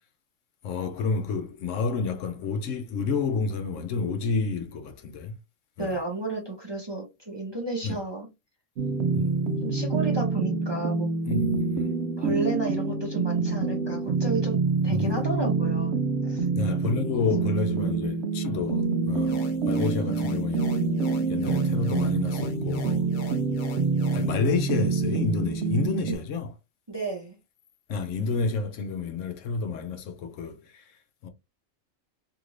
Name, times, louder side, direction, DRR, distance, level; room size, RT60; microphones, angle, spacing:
voice 1, 0.6-5.4 5.8-6.0 7.8-8.0 9.1-9.4 11.3-11.9 12.3-12.4 14.9-15.2 16.5-19.4 19.6-20.7 21.3-23.0 24.1-26.6 27.9-31.3, left 4 dB, 75° left, 0.9 m, -30 dB
voice 2, 5.8-8.3 9.6-11.1 12.2-16.0 16.2-16.5 26.9-27.4, right 2 dB, 25° right, 0.7 m, -32 dB
sound 1, 8.8-26.2, right 4 dB, 65° right, 0.8 m, -26 dB
sound 2, 19.2-24.3, left 3 dB, 55° left, 0.6 m, -42 dB
2.8 x 2.5 x 3.0 m
omnidirectional pair, 1.3 m